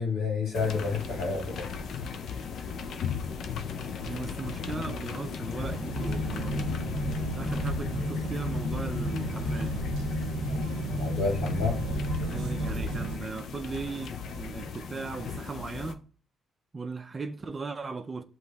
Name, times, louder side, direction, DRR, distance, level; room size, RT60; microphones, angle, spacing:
voice 1, 0.0-1.7 10.9-11.8, left 4 dB, 90° left, 1.8 m, -30 dB
sound 1, 0.5-15.9, left 6 dB, 70° left, 0.5 m, -37 dB
voice 2, 4.1-6.8 7.3-10.0 12.2-16.0 16.7-18.2, right 4 dB, 30° right, 0.4 m, -38 dB
sound 2, 5.4-13.7, left 1 dB, 30° left, 1.8 m, -34 dB
sound 3, 5.6-13.2, right 4 dB, 85° right, 0.5 m, -37 dB
7.6 x 3.0 x 2.3 m
cardioid pair, 90°, 0 cm